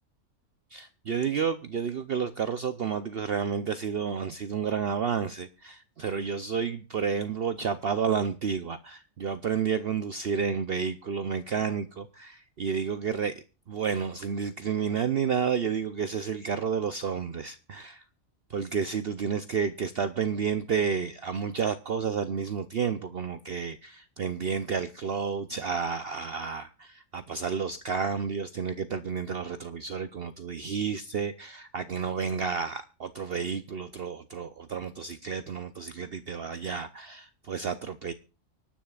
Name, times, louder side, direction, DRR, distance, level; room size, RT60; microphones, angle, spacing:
voice 1, 0.7-18.0 18.5-38.1, right 6 dB, 55° right, 11 dB, 0.8 m, -31 dB
24.5 x 10.0 x 2.4 m, 0.33 s
omnidirectional pair, 1.4 m